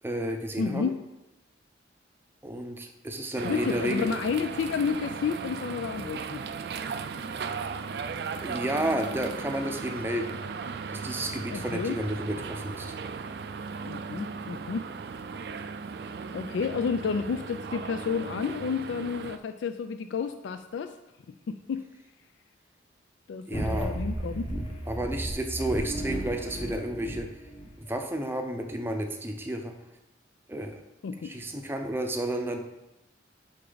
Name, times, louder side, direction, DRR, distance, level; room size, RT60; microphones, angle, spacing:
voice 1, 0.0-0.9 2.4-4.1 8.4-10.4 10.9-12.9 23.5-24.0 24.9-27.3 27.8-29.7 30.5-30.8 31.2-32.6, right 1 dB, 10° right, 4 dB, 0.6 m, -31 dB
voice 2, 0.6-0.9 3.4-6.4 11.5-12.0 13.9-14.9 16.3-20.9 21.5-21.9 23.3-24.5 31.0-31.3, left 5 dB, 75° left, 9 dB, 0.3 m, -31 dB
sound 1, 3.4-19.4, right 5 dB, 55° right, 0.3 m, -37 dB
sound 2, 23.5-27.7, right 1 dB, 30° left, 1.0 m, -34 dB
6.4 x 5.9 x 3.9 m, 0.92 s
head